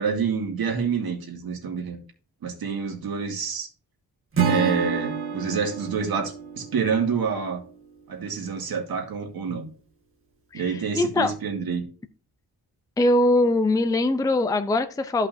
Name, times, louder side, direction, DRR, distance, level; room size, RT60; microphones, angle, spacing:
voice 1, 0.0-2.0 2.4-3.7 4.4-7.6 8.1-9.7 10.5-11.8, right 6 dB, 70° right, 3 dB, 2.3 m, -27 dB
Acoustic guitar / Strum, 4.3-7.5, right 6 dB, 35° right, 1.8 m, -28 dB
voice 2, 11.0-11.3 13.0-15.3, left 2 dB, 10° left, 9 dB, 0.5 m, -21 dB
14.0 x 5.7 x 2.6 m, 0.39 s
wide cardioid pair, 170°, 37 cm